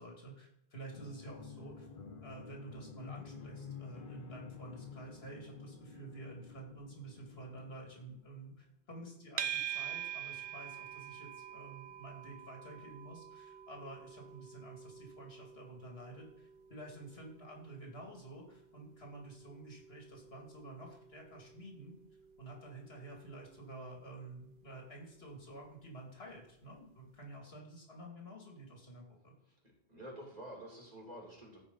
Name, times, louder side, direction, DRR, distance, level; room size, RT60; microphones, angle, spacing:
voice 1, 0.0-1.9 2.2-22.0 22.4-29.3, right 2 dB, 75° left, -1 dB, 2.8 m, -50 dB
sound 1, 0.9-8.5, left 5 dB, 55° left, 1.1 m, -50 dB
sound 2, 9.4-26.6, right 10 dB, 60° right, 0.7 m, -47 dB
voice 2, 29.9-31.6, right 1 dB, 40° right, -2 dB, 3.0 m, -49 dB
15.0 x 5.0 x 4.0 m, 0.82 s
omnidirectional pair, 1.1 m